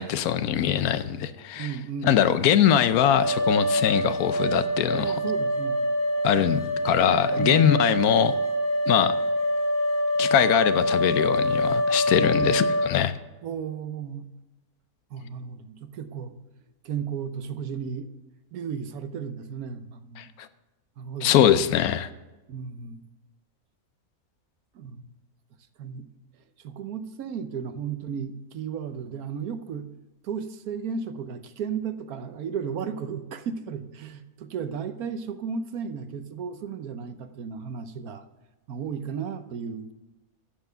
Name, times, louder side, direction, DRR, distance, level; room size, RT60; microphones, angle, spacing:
voice 1, 0.0-1.7 2.0-5.2 6.2-8.3 8.9-9.2 10.2-13.1 20.2-20.3 21.2-22.1, left 9 dB, 80° left, 13 dB, 1.1 m, -22 dB
voice 2, 1.6-2.4 4.9-5.9 7.3-7.6 12.3-12.7 13.4-14.2 15.1-16.4 16.8-18.1 18.5-20.3 21.0-21.4 22.5-23.0 24.7-25.1 25.8-26.1 26.6-29.9 30.2-38.2 38.7-39.9, right 6 dB, 80° right, 10 dB, 1.3 m, -34 dB
sound 1, 3.1-12.9, equal, 15° left, 1.8 m, -25 dB
9.1 x 7.0 x 6.7 m, 1.1 s
omnidirectional pair, 1.6 m